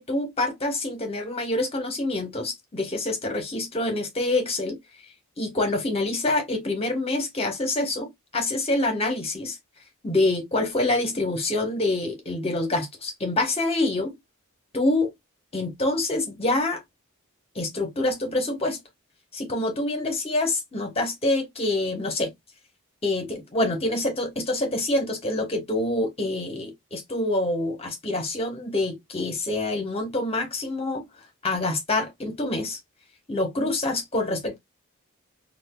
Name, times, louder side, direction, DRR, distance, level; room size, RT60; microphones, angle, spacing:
voice 1, 0.0-4.8 5.4-9.6 10.0-14.1 14.7-15.1 15.5-16.8 17.5-18.8 19.3-22.3 23.0-31.1 31.4-32.8 33.3-34.6, left 2 dB, 30° left, 1.2 m, -26 dB
4.1 x 2.5 x 2.3 m
head